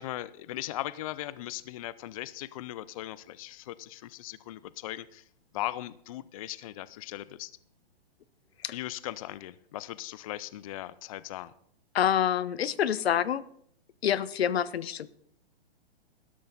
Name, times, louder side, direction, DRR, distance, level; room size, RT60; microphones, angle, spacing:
voice 1, 0.0-5.2 5.5-7.5 8.7-11.5, left 15 dB, 35° left, 18 dB, 0.4 m, -38 dB
voice 2, 11.9-13.4 14.0-15.1, left 9 dB, 80° left, 19 dB, 0.7 m, -27 dB
12.5 x 12.0 x 3.9 m, 0.68 s
hypercardioid pair, 145°, 31 cm